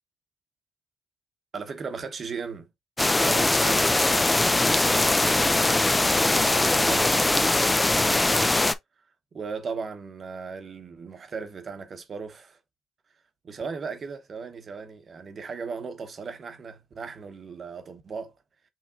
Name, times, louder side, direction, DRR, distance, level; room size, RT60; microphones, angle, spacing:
voice 1, 1.5-2.7 3.1-5.3 6.7-8.3 9.3-12.6 13.4-18.3, right 5 dB, 45° right, 1.0 m, -37 dB
sound 1, 3.0-8.7, left 2 dB, 15° left, 0.4 m, -21 dB
5.9 x 3.3 x 2.4 m
cardioid pair, 90°, 0 cm